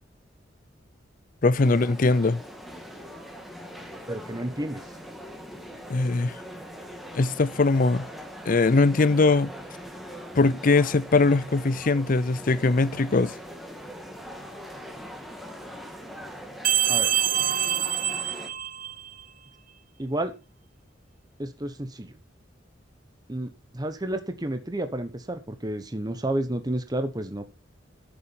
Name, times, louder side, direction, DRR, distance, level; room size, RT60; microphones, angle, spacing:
voice 1, 1.4-2.4 5.9-6.4 7.1-8.1 8.5-9.5 10.4-13.3, left 3 dB, 45° left, 0.5 m, -21 dB
sound 1, 1.6-18.5, equal, ahead, 2.0 m, -41 dB
voice 2, 4.1-4.8 16.9-17.1 20.0-20.3 21.4-22.2 23.3-27.4, right 1 dB, 20° right, 1.1 m, -31 dB
sound 2, 16.6-19.2, right 11 dB, 45° right, 0.7 m, -25 dB
13.0 x 7.1 x 5.5 m
head